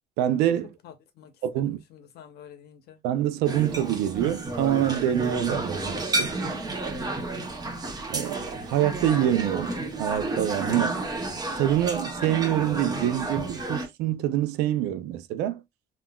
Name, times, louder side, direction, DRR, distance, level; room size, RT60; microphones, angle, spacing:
voice 1, 0.2-0.7 1.4-1.8 3.0-6.3 8.1-11.0 11.6-15.6, right 12 dB, 90° right, 0.4 m, -26 dB
voice 2, 0.8-3.0 7.2-7.6, left 9 dB, 70° left, 0.8 m, -49 dB
sound 1, 3.5-13.9, right 2 dB, 25° right, 0.7 m, -31 dB
3.6 x 2.3 x 2.2 m
cardioid pair, 110°, 17 cm